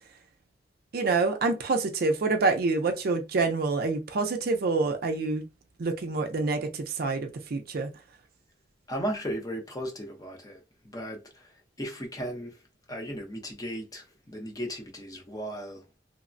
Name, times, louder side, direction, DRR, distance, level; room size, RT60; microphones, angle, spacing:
voice 1, 0.9-5.5 5.8-7.9, right 3 dB, 55° right, 0.4 m, -27 dB
voice 2, 8.9-12.6 12.9-15.8, equal, 20° left, 0.7 m, -36 dB
3.2 x 2.0 x 2.5 m
head